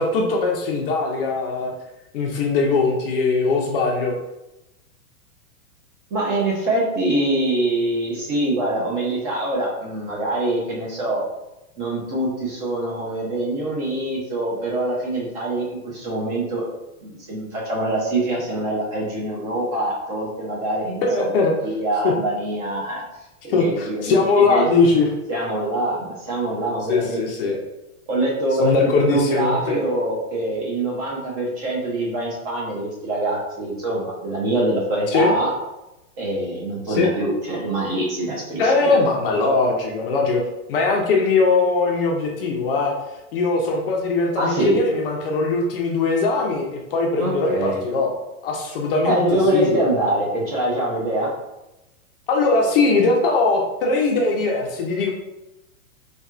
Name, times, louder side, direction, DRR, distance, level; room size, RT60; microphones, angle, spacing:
voice 1, 0.0-1.7 2.1-4.1 21.0-21.5 22.0-22.1 23.5-25.1 26.9-27.6 28.6-29.8 35.1-35.3 36.9-37.1 38.6-40.4 40.7-42.9 43.3-48.1 48.4-49.8 52.3-55.1, left 3 dB, 40° left, 0 dB, 0.5 m, -20 dB
voice 2, 6.1-11.2 11.8-16.6 17.0-21.3 21.6-23.0 23.4-24.7 25.3-27.3 28.1-35.5 36.2-39.0 44.4-44.8 47.2-47.8 49.0-51.3, right 1 dB, 25° right, -3 dB, 0.6 m, -24 dB
4.2 x 2.3 x 2.4 m, 0.95 s
supercardioid pair, 155°, 45 cm